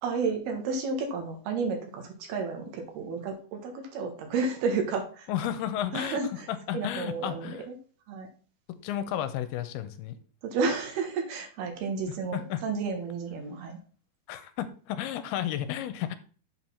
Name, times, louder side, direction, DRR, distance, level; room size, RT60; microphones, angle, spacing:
voice 1, 0.0-5.3 5.9-6.5 6.7-7.8 8.1-8.3 10.4-13.8, right 4 dB, 75° right, 3 dB, 3.5 m, -31 dB
voice 2, 5.3-6.2 6.5-7.7 8.8-10.2 12.3-12.6 14.3-16.2, left 11 dB, 85° left, 11 dB, 2.6 m, -32 dB
7.9 x 4.6 x 5.6 m, 0.41 s
omnidirectional pair, 4.5 m